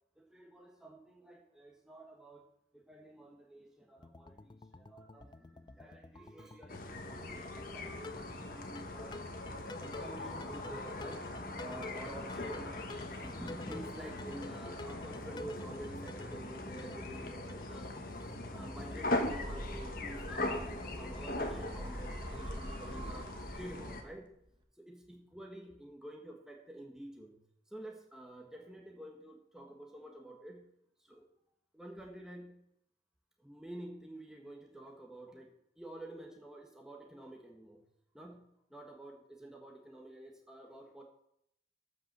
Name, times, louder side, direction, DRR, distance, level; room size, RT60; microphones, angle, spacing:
voice 1, 0.2-2.5 2.7-8.2 8.5-9.2 9.6-11.3 11.6-17.9 18.5-24.4 24.8-27.4 27.7-30.7 31.0-31.2 31.7-32.7 33.4-37.8 38.1-41.0, right 1 dB, 5° right, 0 dB, 1.4 m, -49 dB
sound 1, 4.0-22.7, left 3 dB, 25° left, 0.4 m, -51 dB
sound 2, 6.7-24.0, left 2 dB, 50° left, 1.3 m, -41 dB
sound 3, 19.0-24.3, right 1 dB, 25° right, 1.2 m, -45 dB
13.5 x 5.4 x 6.7 m, 0.75 s
head